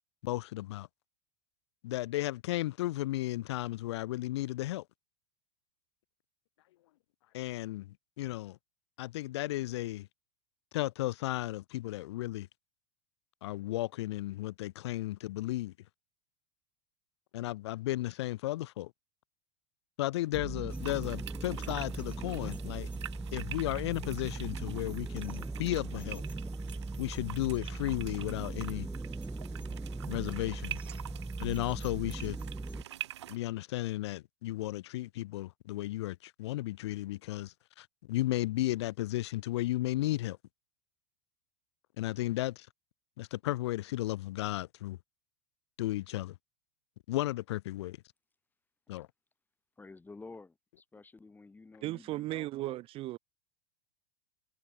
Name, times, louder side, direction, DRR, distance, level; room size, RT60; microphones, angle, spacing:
voice 1, 0.2-0.9 1.8-4.8 7.3-8.6 9.0-10.1 10.7-12.5 13.4-15.7 17.3-18.9 20.0-22.9 23.3-26.2 27.0-28.9 30.1-30.8 31.4-32.4 33.3-40.4 42.0-42.7 43.2-45.0 45.8-46.4 47.1-48.0 48.9-49.1, left 16 dB, 75° left, 0.4 m, -34 dB
sound 1, 20.3-32.8, right 3 dB, 10° right, 1.0 m, -39 dB
sound 2, 20.7-33.4, right 12 dB, 85° right, 1.3 m, -47 dB
voice 2, 49.8-52.8, left 3 dB, 15° left, 3.9 m, -51 dB
voice 3, 51.8-53.2, right 17 dB, 40° right, 0.4 m, -36 dB
hypercardioid pair, 105°, 14 cm